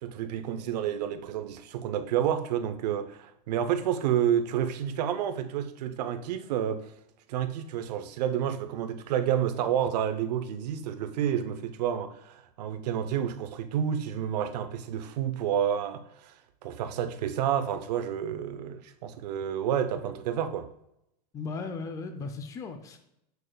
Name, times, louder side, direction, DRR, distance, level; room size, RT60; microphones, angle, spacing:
voice 1, 0.0-6.8 7.3-16.0 16.6-20.7, right 9 dB, 75° right, 0.7 m, -29 dB
voice 2, 21.3-23.0, left 4 dB, 15° left, 0.5 m, -36 dB
6.7 x 6.2 x 2.3 m
supercardioid pair, 160°, 21 cm